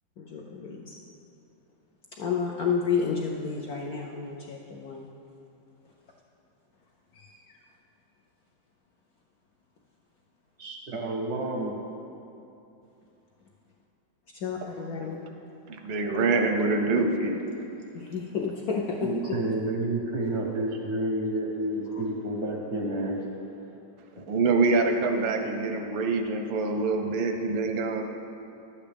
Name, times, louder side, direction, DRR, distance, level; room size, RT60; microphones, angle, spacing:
voice 1, 0.2-0.9 2.2-5.1 7.1-7.4 14.4-15.3 17.9-19.4 21.9-22.0, left 5 dB, 70° left, -1 dB, 0.9 m, -31 dB
voice 2, 10.6-11.7 19.0-23.2, right 1 dB, 55° right, 0 dB, 0.8 m, -30 dB
voice 3, 15.7-17.4 24.2-28.0, right 3 dB, 90° right, 4 dB, 1.5 m, -25 dB
11.0 x 8.4 x 3.4 m, 2.8 s
omnidirectional pair, 2.1 m